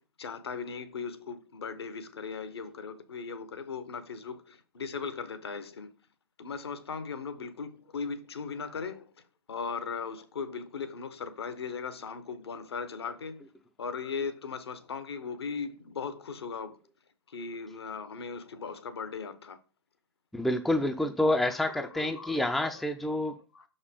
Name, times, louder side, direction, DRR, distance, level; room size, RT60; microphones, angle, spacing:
voice 1, 0.0-5.9 6.4-9.1 9.5-13.4 13.8-16.8 17.3-19.6 21.5-22.4 22.7-22.8 23.5-23.7, left 5 dB, 75° left, 1.0 m, -38 dB
voice 2, 20.3-23.4, left 1 dB, ahead, 0.4 m, -28 dB
6.0 x 5.4 x 3.6 m
figure-of-eight pair, 115°, 14 cm